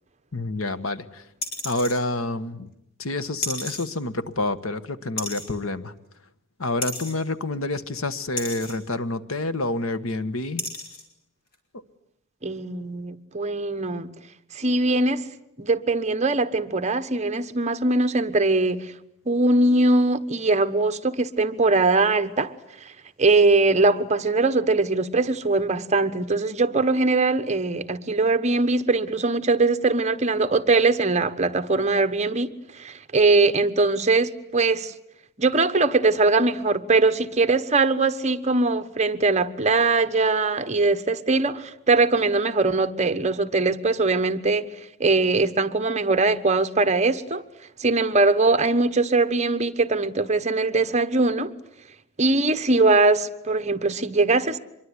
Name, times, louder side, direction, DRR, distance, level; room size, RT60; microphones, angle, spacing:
voice 1, 0.3-1.3 1.6-2.7 3.0-5.9 6.6-10.6 11.7-11.8, left 2 dB, 75° left, 1.4 m, -28 dB
sound 1, 1.4-2.0 3.4-3.9 5.2-5.5 6.8-7.1 8.4-8.8 9.8-9.9 10.6-11.0 11.5-11.6, left 2 dB, 45° left, 5.4 m, -32 dB
voice 2, 12.4-14.1 14.5-15.2 15.6-18.9 19.3-22.5 23.2-34.9 35.4-44.7 45.0-47.4 47.8-51.5 52.2-54.6, right 3 dB, 35° right, 1.2 m, -21 dB
25.5 x 22.5 x 9.8 m
head